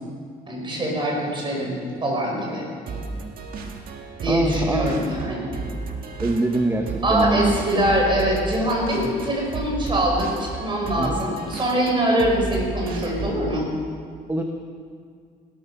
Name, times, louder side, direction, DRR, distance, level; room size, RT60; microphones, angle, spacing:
voice 1, 0.5-2.7 4.2-5.5 7.0-13.6, right 1 dB, 30° right, -1 dB, 5.3 m, -23 dB
sound 1, 2.9-13.5, right 4 dB, 60° right, 1.8 m, -33 dB
voice 2, 4.3-4.9 6.2-7.9 11.0-11.2 14.3-14.4, right 2 dB, 15° right, 3 dB, 1.1 m, -24 dB
17.5 x 13.0 x 5.9 m, 2.1 s
cardioid pair, 110°, 17 cm